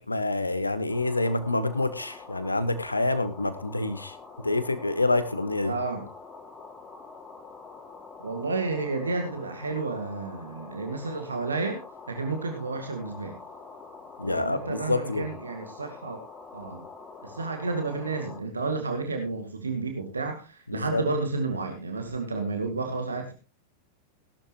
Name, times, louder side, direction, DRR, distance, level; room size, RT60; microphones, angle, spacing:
voice 1, 0.0-4.2 4.4-5.7 14.2-15.3 20.7-21.0, left 2 dB, 85° left, 13 dB, 1.2 m, -27 dB
sound 1, 0.9-18.4, left 4 dB, 20° left, 3.3 m, -46 dB
voice 2, 5.6-6.0 8.2-11.8 12.1-13.4 14.2-16.2 16.5-16.8 17.2-23.3, right 3 dB, 75° right, 5 dB, 1.9 m, -31 dB
17.5 x 12.0 x 3.0 m, 0.28 s
figure-of-eight pair, 90°, 0 cm